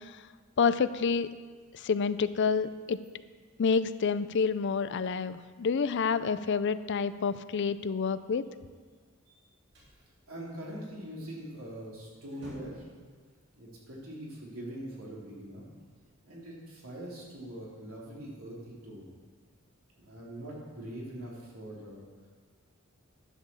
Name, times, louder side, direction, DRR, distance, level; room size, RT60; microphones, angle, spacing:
voice 1, 0.6-1.3 1.7-3.0 3.6-8.4, left 5 dB, 60° left, 14 dB, 0.4 m, -28 dB
sound 1, 9.2-10.0 11.6-11.8 12.1-13.0, equal, 60° right, 3.2 m, -50 dB
voice 2, 10.3-12.8 13.6-15.7 16.2-19.1 20.0-22.0, right 1 dB, 80° right, -4 dB, 3.3 m, -43 dB
11.0 x 6.8 x 7.0 m, 1.5 s
head